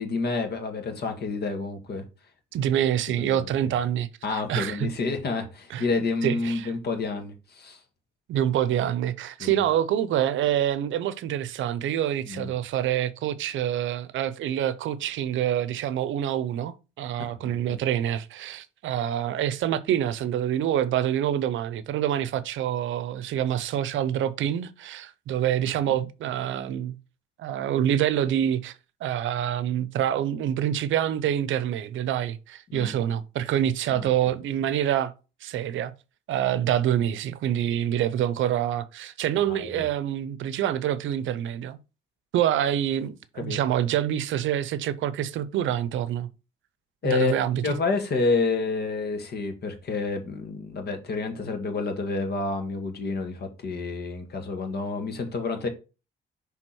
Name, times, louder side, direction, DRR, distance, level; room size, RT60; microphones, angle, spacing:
voice 1, 0.0-2.0 3.2-3.5 4.2-7.8 9.4-9.5 12.3-12.5 17.3-17.6 25.8-26.0 32.7-32.9 33.9-34.0 39.5-39.8 43.4-43.6 47.0-47.3 47.6-55.7, left 4 dB, 55° left, 1.7 m, -29 dB
voice 2, 2.5-4.9 5.7-5.9 6.2-6.7 8.3-27.0 27.4-35.1 35.4-35.9 36.3-41.8 42.3-46.3 47.0-47.6, right 10 dB, 75° right, 0.6 m, -26 dB
6.2 x 3.5 x 4.4 m
cardioid pair, 90°, 20 cm